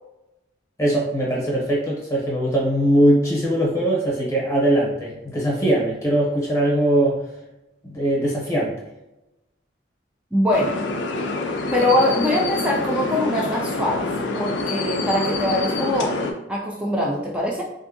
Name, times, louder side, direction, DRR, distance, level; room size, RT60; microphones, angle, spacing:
voice 1, 0.8-7.2 7.8-8.7, right 1 dB, 15° left, -4 dB, 0.7 m, -21 dB
voice 2, 10.3-10.7 11.7-14.1 14.3-16.1 16.5-17.6, left 1 dB, 5° right, -3 dB, 0.3 m, -22 dB
sound 1, 10.5-16.3, left 2 dB, 70° left, 0.4 m, -26 dB
3.4 x 2.6 x 2.5 m, 0.95 s
head